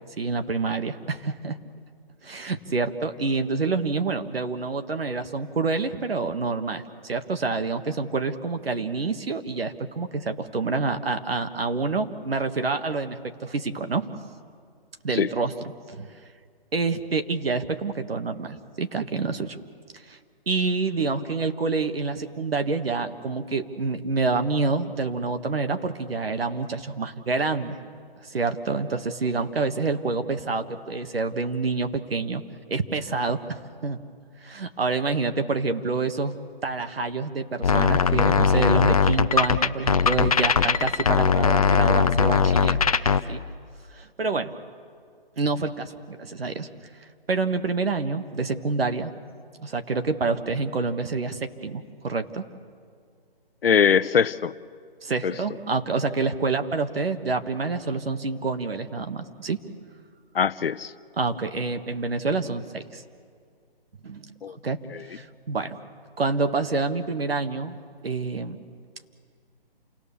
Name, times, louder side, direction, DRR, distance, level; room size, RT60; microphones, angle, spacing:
voice 1, 0.2-1.6 2.2-14.1 15.0-15.5 15.9-16.1 16.7-19.6 20.1-20.2 20.5-27.8 28.2-32.4 32.7-33.6 33.8-34.0 34.4-42.8 43.3-43.4 43.9-44.5 45.4-46.7 47.3-49.1 49.6-52.4 55.0-59.6 61.2-63.0 64.0-64.3 64.6-65.8 66.2-67.8 68.0-68.6, right 4 dB, 80° right, 8 dB, 1.7 m, -27 dB
sound 1, 37.6-43.2, left 5 dB, 40° left, 0.6 m, -20 dB
voice 2, 53.6-54.5 55.2-55.3 60.3-60.9 64.4-64.5 64.9-65.0, left 7 dB, 75° left, 14 dB, 0.8 m, -22 dB
28.0 x 19.0 x 7.0 m, 2.1 s
hypercardioid pair, 170°, 29 cm